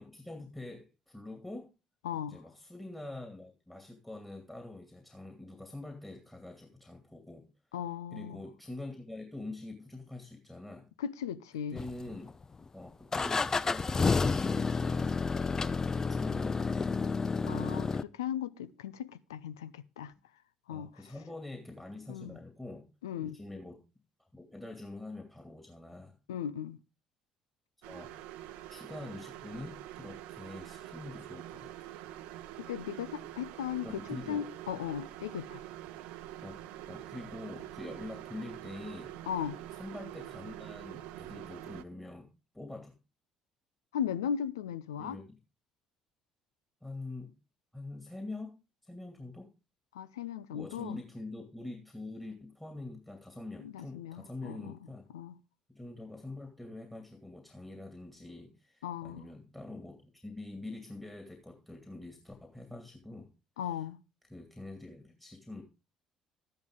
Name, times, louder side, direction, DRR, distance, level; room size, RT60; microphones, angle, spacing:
voice 1, 0.0-1.7 2.3-7.5 8.1-10.9 11.7-12.3 12.7-17.0 20.7-22.9 23.2-23.8 24.2-26.1 27.9-28.1 28.7-31.9 33.8-34.5 34.7-34.8 36.4-39.1 39.7-42.3 42.5-42.9 45.0-45.3 46.8-47.3 47.7-49.5 50.5-55.0 55.7-63.3 63.6-63.8 64.3-65.6, left 2 dB, 10° left, 2.5 m, -45 dB
voice 2, 2.0-2.4 7.7-8.4 11.0-11.8 17.4-20.1 20.7-20.9 22.1-22.4 23.0-23.4 26.3-26.8 32.6-35.6 39.3-39.6 43.9-45.2 49.9-51.0 53.6-54.8 55.1-55.4 58.8-59.3 63.6-64.0, left 9 dB, 75° left, 0.5 m, -37 dB
sound 1, 11.8-12.4 13.1-18.0, left 4 dB, 25° left, 0.5 m, -30 dB
sound 2, 27.8-41.8, right 13 dB, 65° right, 0.8 m, -45 dB
13.5 x 10.5 x 3.8 m
figure-of-eight pair, 50°, 2 cm